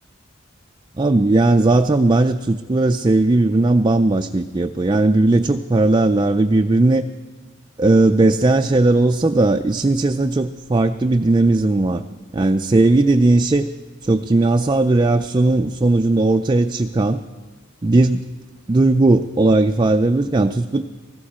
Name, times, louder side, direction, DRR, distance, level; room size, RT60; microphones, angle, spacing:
voice 1, 1.0-7.0 7.8-12.0 12.3-13.7 14.0-17.2 17.8-18.2 18.7-20.8, right 2 dB, 20° right, 6 dB, 0.4 m, -17 dB
19.0 x 15.5 x 4.3 m, 1.3 s
head